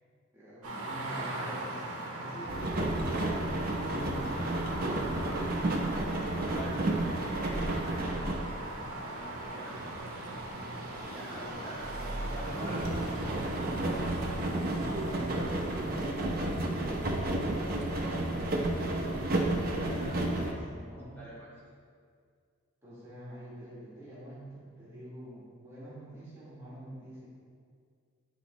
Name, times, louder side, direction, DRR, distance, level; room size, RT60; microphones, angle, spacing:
voice 1, 0.3-1.7 2.2-3.4 11.3-11.5 15.0-19.8 20.2-21.2 22.8-24.4 24.7-27.3, equal, 10° right, -9 dB, 1.4 m, -46 dB
sound 1, 0.6-16.0, right 1 dB, 85° right, 0.9 m, -39 dB
sound 2, 2.5-8.9 9.4-20.5, right 1 dB, 45° right, 0.7 m, -32 dB
voice 2, 6.4-9.8 11.0-13.7 19.7-20.2 21.1-21.5, right 1 dB, 10° left, -10 dB, 1.4 m, -46 dB
8.9 x 4.0 x 3.0 m, 2.1 s
head